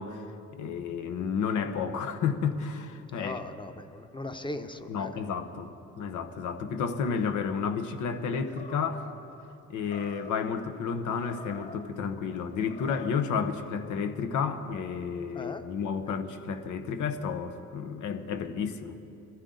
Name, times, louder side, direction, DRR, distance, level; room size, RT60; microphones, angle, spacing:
voice 1, 0.0-3.4 4.9-5.7 6.0-9.1 9.7-19.0, left 6 dB, 75° left, 9 dB, 1.1 m, -31 dB
voice 2, 3.1-5.1 15.3-15.6 16.1-16.2, left 2 dB, 15° left, 8 dB, 1.0 m, -38 dB
Animal, 8.4-9.1 9.8-10.5 11.1-11.8 12.5-13.2, left 2 dB, 35° left, 2.5 m, -46 dB
21.5 x 14.5 x 3.9 m, 2.7 s
cardioid pair, 90°, 30 cm